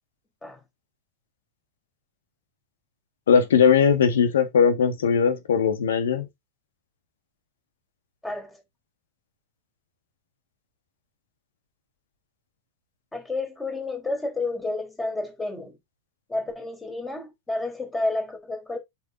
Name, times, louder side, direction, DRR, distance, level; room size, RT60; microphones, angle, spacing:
voice 1, 3.3-6.3, left 6 dB, 65° left, 1.8 m, -19 dB
voice 2, 8.2-8.6 13.1-15.8 16.3-18.8, left 2 dB, 10° left, 4.0 m, -30 dB
8.0 x 6.3 x 3.9 m
figure-of-eight pair, 90°, 0 cm